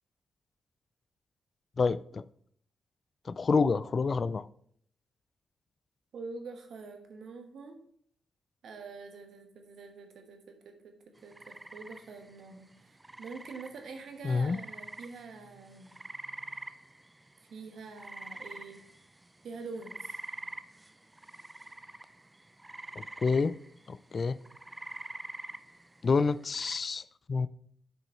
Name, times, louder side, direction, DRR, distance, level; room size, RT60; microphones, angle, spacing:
voice 1, 1.8-2.2 3.3-4.5 14.2-14.6 23.0-23.6 23.9-24.4 26.0-27.5, left 4 dB, 50° left, 17 dB, 0.3 m, -28 dB
voice 2, 6.1-7.7 8.6-15.9 17.5-18.8 19.4-20.2, right 4 dB, 75° right, 5 dB, 1.2 m, -45 dB
sound 1, 11.2-26.8, right 1 dB, 20° right, 0.5 m, -46 dB
7.8 x 4.8 x 4.4 m, 0.64 s
supercardioid pair, 50°, 0 cm